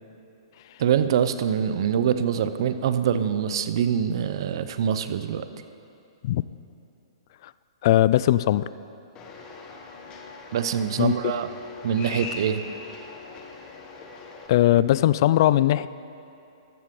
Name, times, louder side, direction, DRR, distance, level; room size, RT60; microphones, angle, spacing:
voice 1, 0.8-5.5 10.5-11.5 11.8-12.6, right 8 dB, 60° right, 11 dB, 0.7 m, -24 dB
voice 2, 7.8-8.6 11.0-11.1 14.5-15.9, left 13 dB, 50° left, 16 dB, 0.4 m, -19 dB
sound 1, 9.2-14.5, left 3 dB, 25° left, 1.5 m, -40 dB
14.5 x 12.0 x 3.8 m, 2.8 s
hypercardioid pair, 135°, 3 cm